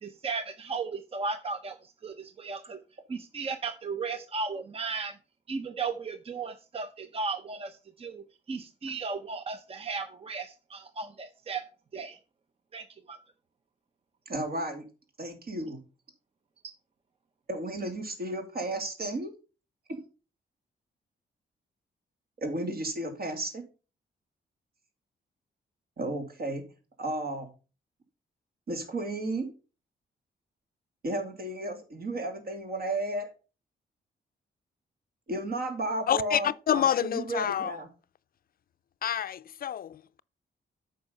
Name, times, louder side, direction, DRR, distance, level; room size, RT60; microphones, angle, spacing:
voice 1, 0.0-2.8 3.1-5.2 5.5-11.7 11.9-12.2 12.7-13.2 16.6-16.7, right 4 dB, 35° right, 0.7 m, -35 dB
voice 2, 14.3-14.8 15.2-15.8 17.5-19.3 19.9-20.0 22.4-23.6 26.0-26.6 27.0-27.5 28.7-29.5 31.0-33.3 35.3-37.9, right 1 dB, 55° right, 2.6 m, -33 dB
voice 3, 36.1-37.7 39.0-40.2, left 9 dB, 55° left, 0.4 m, -28 dB
8.8 x 5.6 x 5.4 m
cardioid pair, 115°, 18 cm